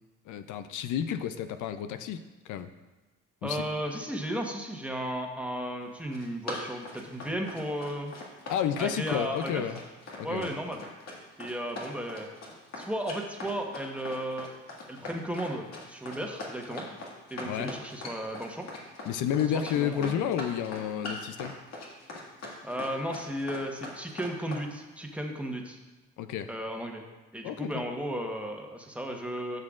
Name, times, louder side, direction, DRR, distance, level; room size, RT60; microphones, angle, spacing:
voice 1, 0.3-2.7 3.4-3.6 8.5-9.8 10.2-10.5 17.5-17.7 19.0-21.6 26.2-26.5 27.4-27.8, left 9 dB, 80° left, 10 dB, 0.5 m, -31 dB
voice 2, 3.4-8.1 8.8-9.6 10.2-10.8 11.4-12.3 12.8-14.5 14.9-16.9 17.3-18.7 19.5-20.2 22.6-25.8 26.5-27.0 27.3-29.6, equal, 5° right, 1 dB, 1.1 m, -34 dB
Run, 5.9-24.7, left 2 dB, 60° left, 1.9 m, -41 dB
12.5 x 6.5 x 2.5 m, 1.2 s
cardioid pair, 90°, 30 cm